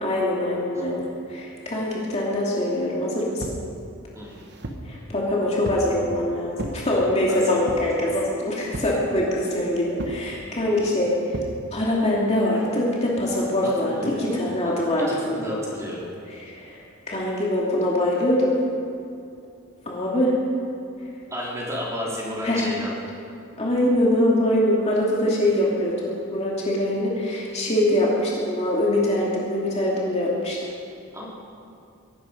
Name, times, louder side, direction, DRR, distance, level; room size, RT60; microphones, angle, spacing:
voice 1, 0.0-3.6 4.9-11.4 11.7-15.5 16.4-16.8 17.1-18.5 19.9-20.4 22.4-22.7 23.6-30.7, left 1 dB, 30° left, -4 dB, 2.5 m, -23 dB
sound 1, 3.4-3.7 4.2-4.9 5.6-5.9 6.6-6.8 7.7-8.0 8.7-9.0 10.0-10.3 11.3-11.6, right 1 dB, 50° right, 1.3 m, -33 dB
voice 2, 13.6-14.4 15.1-16.1 21.3-22.9 31.1-31.3, left 1 dB, 15° right, -6 dB, 3.8 m, -32 dB
22.0 x 12.0 x 5.3 m, 2.5 s
head